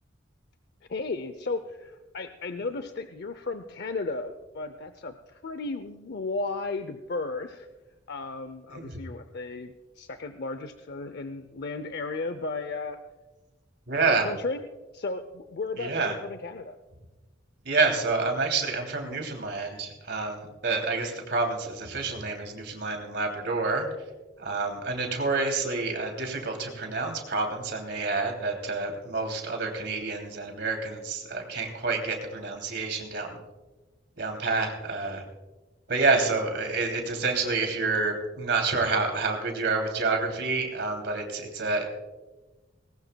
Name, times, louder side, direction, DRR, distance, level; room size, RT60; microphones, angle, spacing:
voice 1, 0.9-7.7 8.1-13.0 14.1-14.6 14.9-16.8, left 3 dB, 55° left, 9 dB, 0.6 m, -34 dB
voice 2, 13.9-14.3 15.8-16.2 17.6-23.9 24.4-33.4 34.2-35.2 35.9-41.9, right 3 dB, 60° right, 3 dB, 2.9 m, -28 dB
20.0 x 18.0 x 2.3 m, 1.2 s
head